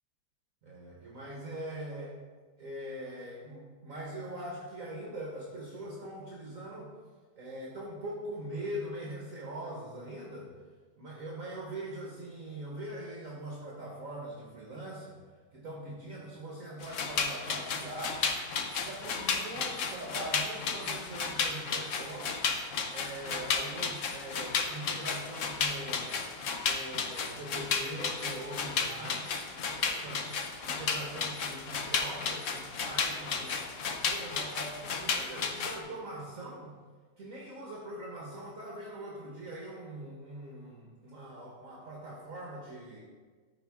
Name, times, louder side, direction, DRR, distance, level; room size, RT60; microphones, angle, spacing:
voice 1, 0.6-2.2 2.6-6.9 7.3-10.5 11.0-15.2 15.5-18.2 18.8-22.4 22.9-26.2 26.6-29.2 29.7-30.3 30.6-36.7 37.2-43.0, right 1 dB, 50° right, -3 dB, 1.4 m, -42 dB
sound 1, 16.8-35.8, left 5 dB, 60° left, 0.8 m, -33 dB
13.5 x 4.6 x 3.5 m, 1.5 s
omnidirectional pair, 2.0 m